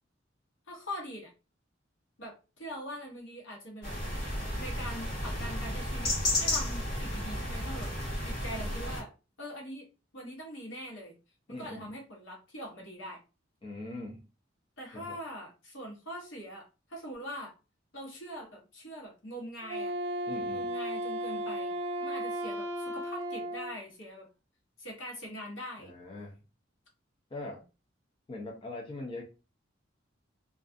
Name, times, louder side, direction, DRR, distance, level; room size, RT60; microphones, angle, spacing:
voice 1, 0.7-1.3 2.2-3.9 4.6-6.1 6.4-7.9 8.2-9.1 9.4-9.9 10.1-11.1 11.5-13.2 14.8-17.5 17.9-19.9 20.5-21.7 22.0-24.3 24.8-25.9 27.4-27.6, equal, 75° left, 1.0 m, -43 dB
sound 1, 3.8-9.0, left 1 dB, 55° left, 1.2 m, -33 dB
voice 2, 11.5-11.9 13.6-14.2 14.9-15.2 20.3-20.7 25.8-26.4 27.3-27.6 28.3-29.2, left 2 dB, 25° left, 0.4 m, -41 dB
Wind instrument woodwind instrument, 19.6-23.8, right 1 dB, 70° right, 0.5 m, -35 dB
2.4 x 2.3 x 2.4 m
head